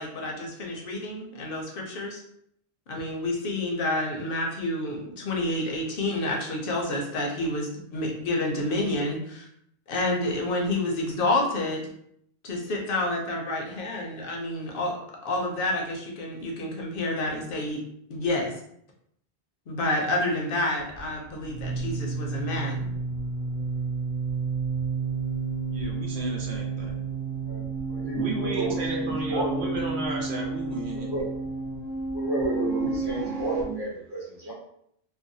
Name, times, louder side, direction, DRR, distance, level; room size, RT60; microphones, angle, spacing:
voice 1, 0.0-2.2 2.9-9.5 9.9-11.8 12.4-14.9 15.2-17.8 18.1-18.5 19.7-22.9, left 1 dB, 65° left, 0 dB, 0.7 m, -29 dB
sound 1, 20.8-33.6, right 4 dB, 60° right, 0.8 m, -31 dB
voice 2, 25.7-27.0 28.1-31.1, right 2 dB, 90° right, -1 dB, 0.9 m, -33 dB
voice 3, 27.9-29.9 30.9-31.3 32.1-34.5, right 2 dB, 25° right, -5 dB, 0.7 m, -31 dB
2.6 x 2.0 x 2.6 m, 0.70 s
omnidirectional pair, 1.1 m